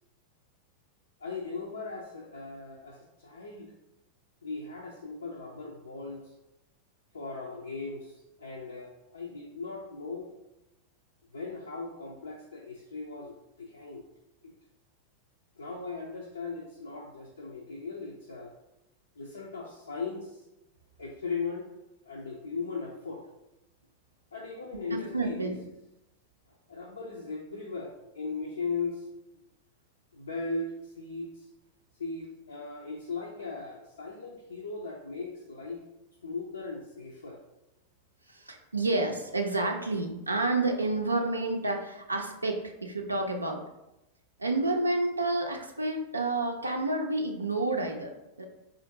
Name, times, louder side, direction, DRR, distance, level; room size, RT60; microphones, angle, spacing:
voice 1, 1.2-3.7 4.4-6.3 7.1-10.3 11.3-14.0 15.6-18.5 19.2-20.4 21.0-21.7 22.1-23.2 24.3-25.5 26.7-29.1 30.1-31.5 32.0-35.8 36.2-37.4, left 4 dB, 75° left, -1 dB, 0.4 m, -38 dB
voice 2, 24.9-25.6 38.3-43.6 44.4-48.4, right 2 dB, 80° right, 3 dB, 0.4 m, -29 dB
4.2 x 2.4 x 2.7 m, 0.92 s
figure-of-eight pair, 90°, 0 cm